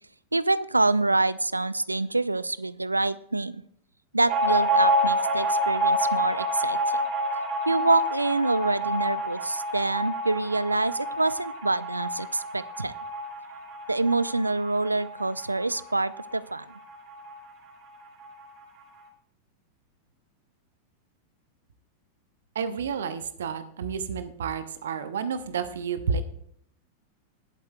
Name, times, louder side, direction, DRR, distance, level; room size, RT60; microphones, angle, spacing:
voice 1, 0.3-3.6 4.1-7.0 7.7-12.9 13.9-16.6, right 2 dB, 85° right, 19 dB, 0.3 m, -26 dB
sound 1, 4.3-17.4 17.7-17.8 18.1-18.8, equal, 40° right, 2.4 m, -28 dB
voice 2, 22.5-26.2, right 6 dB, 65° right, 12 dB, 0.7 m, -30 dB
20.0 x 7.9 x 2.3 m, 0.67 s
figure-of-eight pair, 90°, 0 cm